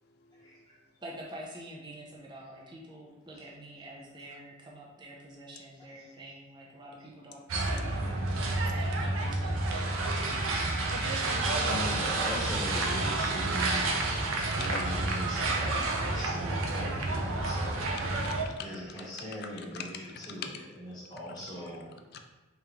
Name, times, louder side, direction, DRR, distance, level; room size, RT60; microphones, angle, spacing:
voice 1, 0.0-0.8 4.3-4.4 13.6-14.0 14.4-15.0 18.0-18.7 19.0-20.6 21.4-21.5 22.1-22.3, left 6 dB, 50° left, 5 dB, 0.3 m, -44 dB
voice 2, 1.0-8.4 8.7-9.9, right 1 dB, 20° right, -3 dB, 0.5 m, -47 dB
sound 1, 7.5-18.4, right 2 dB, 75° right, 0.5 m, -30 dB
voice 3, 10.9-14.0 14.5-17.9 18.5-20.5 20.8-21.9, equal, 20° left, -6 dB, 1.0 m, -40 dB
3.5 x 3.0 x 2.8 m, 1.2 s
head